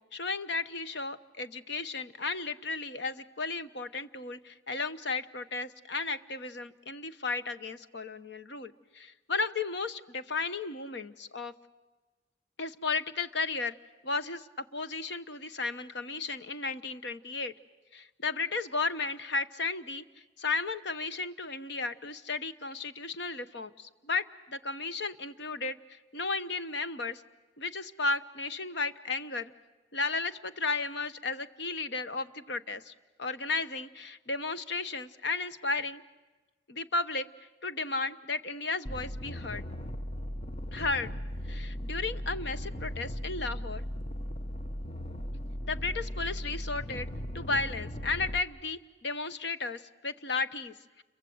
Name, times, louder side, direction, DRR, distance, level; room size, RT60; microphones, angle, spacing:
voice 1, 0.0-11.5 12.6-13.8 14.0-17.5 17.9-20.0 20.4-25.8 26.1-27.2 27.6-29.5 29.9-32.9 33.2-36.0 36.7-37.3 37.6-39.6 40.7-41.1 41.4-43.8 45.6-47.1 47.3-51.0, left 3 dB, 65° left, 12 dB, 1.1 m, -34 dB
sound 1, 38.9-48.4, equal, 35° left, 0.9 m, -37 dB
29.5 x 23.5 x 7.9 m, 1.2 s
head